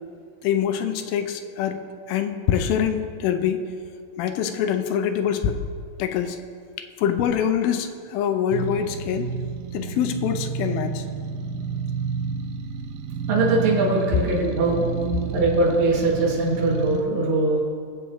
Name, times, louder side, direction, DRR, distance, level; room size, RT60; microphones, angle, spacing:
voice 1, 0.4-1.8 2.1-3.7 4.2-5.6 6.0-6.4 6.8-9.3 9.7-11.0, left 8 dB, 90° left, 7 dB, 2.5 m, -24 dB
sound 1, 8.5-17.0, right 6 dB, 80° right, 2.2 m, -30 dB
voice 2, 13.3-14.8 15.3-17.6, right 2 dB, 50° right, -6 dB, 3.2 m, -21 dB
21.0 x 7.9 x 3.1 m, 2.2 s
omnidirectional pair, 4.1 m